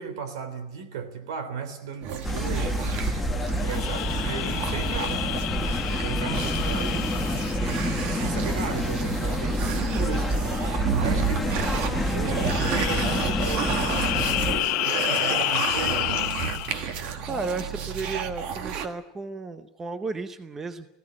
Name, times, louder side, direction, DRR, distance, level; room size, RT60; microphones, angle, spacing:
voice 1, 0.0-2.8 3.4-7.1 7.6-10.4 11.0-11.4 11.7-16.4, right 6 dB, 75° right, 11 dB, 3.4 m, -35 dB
sound 1, 2.0-18.9, right 7 dB, 40° right, 1.6 m, -32 dB
sound 2, 2.2-14.6, equal, 5° left, 1.1 m, -27 dB
sound 3, 3.6-8.4 12.2-16.9, left 17 dB, 40° left, 0.8 m, -30 dB
voice 2, 17.2-20.9, right 4 dB, 15° right, 11 dB, 0.7 m, -34 dB
18.5 x 16.0 x 9.6 m, 0.93 s
supercardioid pair, 175°, 3 cm